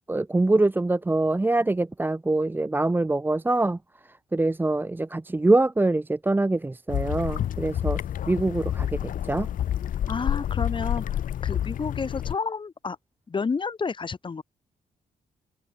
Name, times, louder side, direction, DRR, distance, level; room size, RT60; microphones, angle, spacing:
voice 1, 0.1-3.8 4.3-8.0 8.3-9.5, right 2 dB, 15° right, 1.2 m, -24 dB
sound 1, 6.9-12.4, left 10 dB, 70° left, 1.2 m, -28 dB
voice 2, 10.1-13.0 13.3-14.4, left 5 dB, 35° left, 4.8 m, -30 dB
open air
cardioid pair, 105°, 15 cm